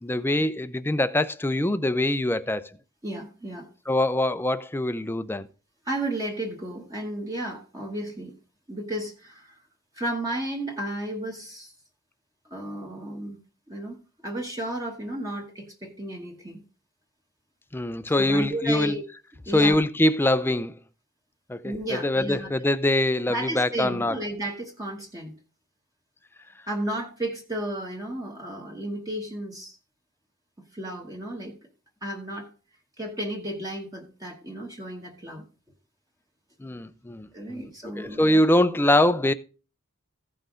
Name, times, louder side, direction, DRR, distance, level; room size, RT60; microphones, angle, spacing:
voice 1, 0.0-2.7 3.9-5.5 17.7-19.0 19.5-20.8 21.5-24.2 36.6-37.7 38.0-39.3, left 1 dB, 10° left, 0.4 m, -23 dB
voice 2, 3.0-3.7 5.8-8.3 8.7-9.5 9.9-11.7 12.5-13.4 13.7-14.0 14.2-16.6 18.1-19.0 19.5-19.8 21.6-22.5 23.3-25.3 26.7-29.8 30.7-31.6 32.0-32.5 33.0-35.4 37.3-38.4, right 1 dB, 15° right, 1.1 m, -33 dB
15.5 x 5.6 x 3.8 m
head